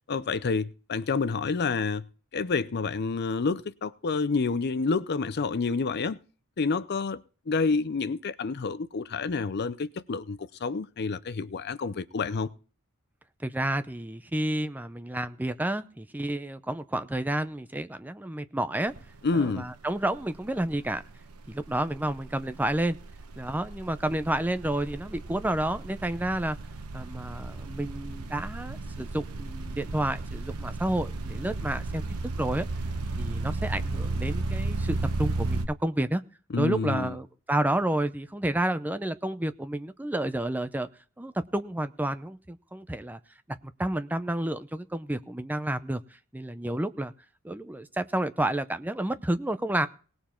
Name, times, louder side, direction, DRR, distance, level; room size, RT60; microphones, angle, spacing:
voice 1, 0.1-2.0 2.3-6.2 6.6-12.5 19.2-19.7 36.5-37.2, left 4 dB, 45° left, 0.5 m, -28 dB
voice 2, 13.4-18.9 19.3-21.0 21.5-23.0 23.4-26.6 26.9-32.7 33.2-36.2 36.6-40.9 41.2-43.2 43.5-46.0 46.3-47.1 47.4-49.9, right 1 dB, 10° right, 0.6 m, -30 dB
sound 1, 18.9-19.2 19.5-35.7, right 3 dB, 85° right, 1.1 m, -34 dB
19.0 x 7.1 x 4.4 m
head